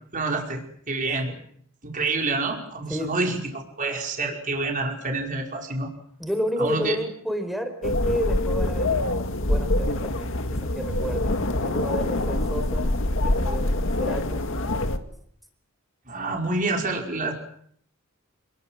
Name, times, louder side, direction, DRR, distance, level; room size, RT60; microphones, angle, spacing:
voice 1, 0.1-1.3 1.8-5.9 6.6-7.0 16.1-17.3, right 3 dB, 40° right, 1 dB, 5.3 m, -27 dB
voice 2, 6.2-9.1 9.5-10.3 10.7-11.3 11.6-14.4, equal, ahead, 7 dB, 4.9 m, -31 dB
sound 1, 7.8-15.0, left 1 dB, 65° left, 2.1 m, -25 dB
29.5 x 22.0 x 7.9 m, 0.66 s
head